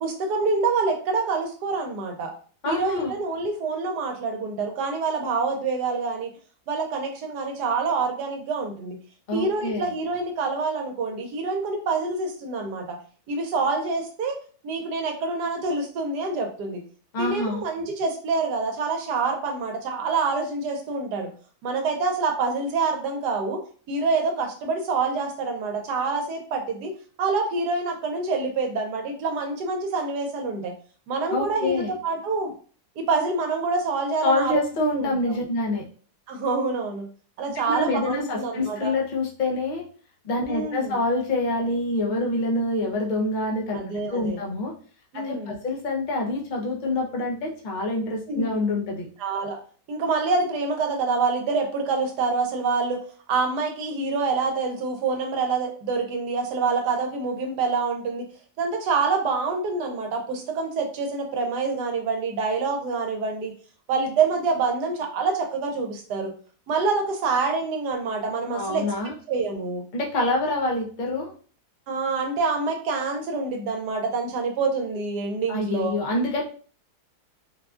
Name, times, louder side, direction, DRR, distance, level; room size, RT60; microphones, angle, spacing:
voice 1, 0.0-2.3 2.6-6.3 6.7-8.9 9.3-12.8 13.3-14.4 14.6-16.8 17.2-21.3 21.6-23.6 23.9-26.9 27.2-30.7 31.1-32.5 33.0-34.6 34.9-35.3 36.3-37.0 37.4-38.9 40.4-40.9 43.7-44.4 45.1-45.6 48.3-48.5 49.2-49.6 49.9-53.0 53.3-58.2 58.6-63.5 63.9-66.3 66.7-68.8 69.3-69.8 71.9-76.0, right 4 dB, 80° right, 3 dB, 1.3 m, -26 dB
voice 2, 2.6-3.1 9.3-9.9 17.1-17.6 31.3-31.9 34.2-35.8 37.7-39.8 40.2-43.8 44.1-44.7 45.1-49.1 68.5-69.1 69.9-71.3 75.5-76.4, left 2 dB, 50° left, -1 dB, 0.5 m, -26 dB
3.8 x 2.3 x 2.4 m, 0.41 s
omnidirectional pair, 1.8 m